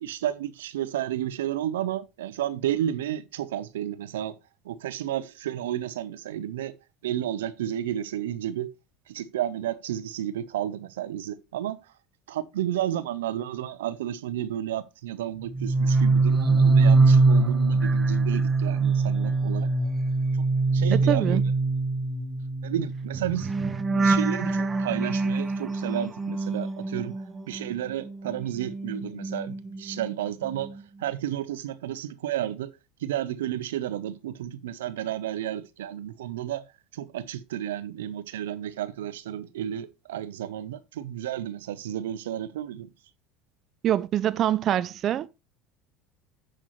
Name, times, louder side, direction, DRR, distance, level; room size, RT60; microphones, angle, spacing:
voice 1, 0.0-4.4 4.6-6.7 7.0-8.7 9.1-11.8 12.3-19.7 20.3-20.4 20.7-21.4 22.6-23.5 23.9-27.1 27.5-30.7 31.0-32.7 33.0-36.6 36.9-42.9, right 11 dB, 90° right, 0.9 m, -32 dB
sound 1, 15.5-27.7 28.0-30.1 30.4-30.8, right 3 dB, 25° right, 1.2 m, -24 dB
voice 2, 20.9-21.4 43.8-45.3, right 11 dB, 50° right, 0.5 m, -25 dB
9.9 x 8.0 x 3.1 m
hypercardioid pair, 90°, 0 cm